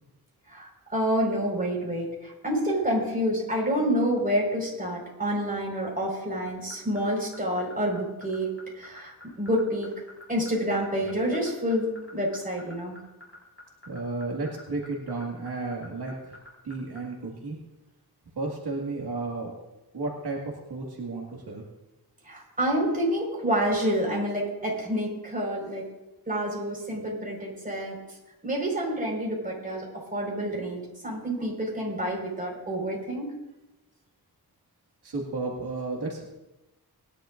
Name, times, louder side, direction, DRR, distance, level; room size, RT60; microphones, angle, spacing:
voice 1, 0.5-8.5 8.8-9.9 10.3-13.0 22.2-25.8 26.3-28.0 28.4-29.9 30.1-33.3, equal, 20° right, -3 dB, 5.0 m, -28 dB
sound 1, 6.5-17.0, left 2 dB, 35° left, 5.3 m, -46 dB
voice 2, 13.9-16.4 16.6-17.6 18.4-19.5 19.9-20.4 20.7-21.6 35.0-36.2, right 3 dB, 75° right, -2 dB, 2.1 m, -33 dB
20.5 x 11.0 x 2.6 m, 0.98 s
wide cardioid pair, 75°, 39 cm